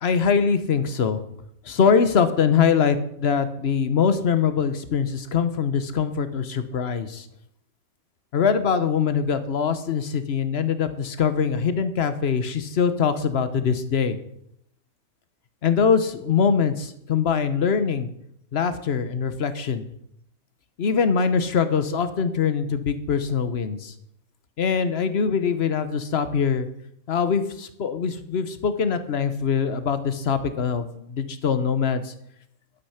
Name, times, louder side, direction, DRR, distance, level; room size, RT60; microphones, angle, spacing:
voice 1, 0.0-1.2 1.6-7.3 8.3-14.2 15.6-18.1 18.5-19.8 20.8-23.9 24.6-26.7 27.1-32.1, left 6 dB, 50° left, 11 dB, 1.1 m, -23 dB
12.0 x 8.4 x 5.7 m, 0.74 s
omnidirectional pair, 1.5 m